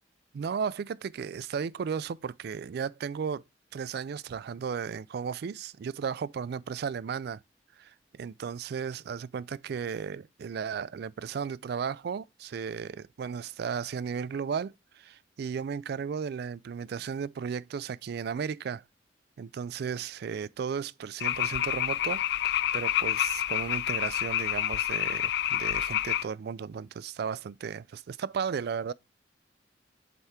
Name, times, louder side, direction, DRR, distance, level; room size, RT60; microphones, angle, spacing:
voice 1, 0.3-3.4 3.7-7.4 7.8-18.8 19.4-28.9, right 6 dB, 60° right, 0.3 m, -35 dB
sound 1, 21.2-26.2, left 12 dB, 60° left, 0.3 m, -28 dB
7.9 x 3.5 x 4.3 m
head